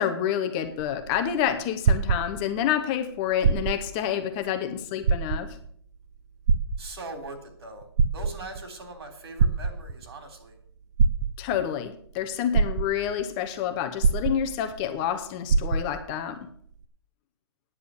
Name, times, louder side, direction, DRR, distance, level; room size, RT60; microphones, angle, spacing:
voice 1, 0.0-5.6 11.4-16.5, left 9 dB, 20° left, 0.8 m, -28 dB
sound 1, 0.6-2.7 3.3-4.0 4.4-4.5 5.0-5.7 6.5-7.3 7.8-8.7 9.4-10.1 11.0-11.7 12.2-12.3 12.5-13.3 14.0-14.8 15.1-15.2 15.5-16.1 16.8-16.9, right 5 dB, 40° right, 0.6 m, -24 dB
voice 2, 6.8-7.9 8.1-10.6, right 2 dB, 70° right, 3.5 m, -41 dB
9.8 x 7.5 x 8.3 m
hypercardioid pair, 170°, 14 cm